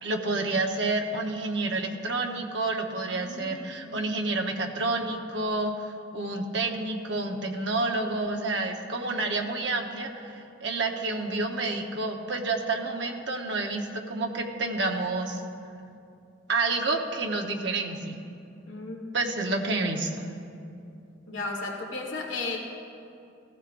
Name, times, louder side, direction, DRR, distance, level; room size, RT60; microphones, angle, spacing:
voice 1, 0.0-15.4 16.5-18.2 19.1-20.3, right 3 dB, 60° right, 2 dB, 1.0 m, -29 dB
voice 2, 3.1-4.1 18.7-19.2 21.3-22.6, left 3 dB, 70° left, 0 dB, 1.8 m, -35 dB
16.0 x 14.5 x 2.6 m, 2.6 s
head